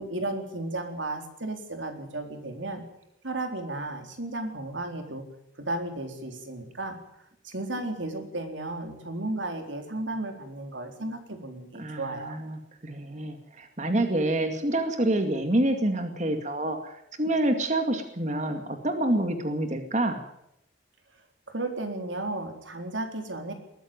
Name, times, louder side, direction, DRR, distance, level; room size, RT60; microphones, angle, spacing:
voice 1, 0.0-2.8 3.2-5.2 5.6-7.0 7.4-12.3 21.5-23.5, right 2 dB, 90° right, 5 dB, 4.0 m, -34 dB
voice 2, 11.8-20.2, right 1 dB, 40° right, 6 dB, 2.3 m, -27 dB
21.0 x 14.5 x 9.3 m, 0.79 s
head